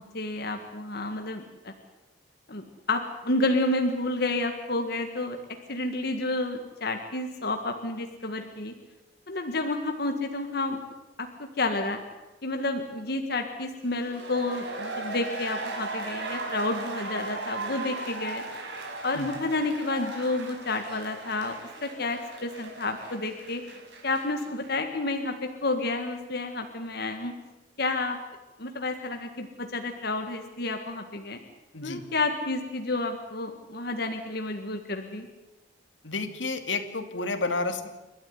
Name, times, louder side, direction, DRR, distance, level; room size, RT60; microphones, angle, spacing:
voice 1, 0.0-1.7 2.5-5.4 5.7-8.7 9.3-10.8 11.2-11.3 11.6-12.0 12.4-18.4 19.0-21.6 21.8-23.6 24.0-27.3 27.8-28.2 28.6-31.4 31.8-35.3, left 2 dB, 60° left, 5 dB, 1.8 m, -30 dB
sound 1, 13.9-24.8 25.1-25.2, right 2 dB, 70° right, 5.6 m, -37 dB
voice 2, 36.0-37.9, left 3 dB, 85° left, 7 dB, 2.5 m, -30 dB
29.0 x 13.5 x 9.8 m, 1.1 s
head